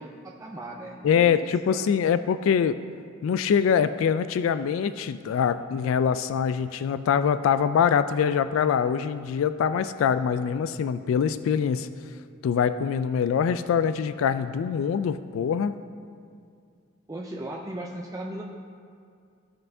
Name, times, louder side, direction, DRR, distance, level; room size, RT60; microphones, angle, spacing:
voice 1, 0.0-1.9 17.1-18.4, right 1 dB, 15° right, -1 dB, 0.4 m, -37 dB
voice 2, 1.0-2.8 3.2-11.9 12.4-15.7, left 7 dB, 85° left, 13 dB, 0.3 m, -24 dB
15.5 x 5.5 x 2.7 m, 2.3 s
head